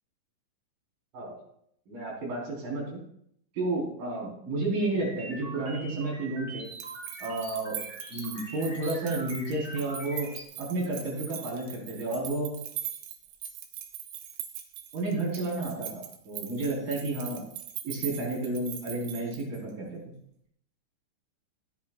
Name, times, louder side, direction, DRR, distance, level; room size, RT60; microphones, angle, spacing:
voice 1, 1.9-3.0 3.5-6.7 7.2-7.8 8.1-10.3 10.6-12.5 14.9-17.4 17.8-20.0, right 2 dB, 45° right, -5 dB, 5.9 m, -31 dB
sound 1, 4.9-10.4, right 1 dB, 20° right, 2.6 m, -44 dB
sound 2, 6.7-19.7, right 11 dB, 85° right, 3.6 m, -41 dB
16.0 x 11.0 x 2.5 m, 0.70 s
omnidirectional pair, 5.7 m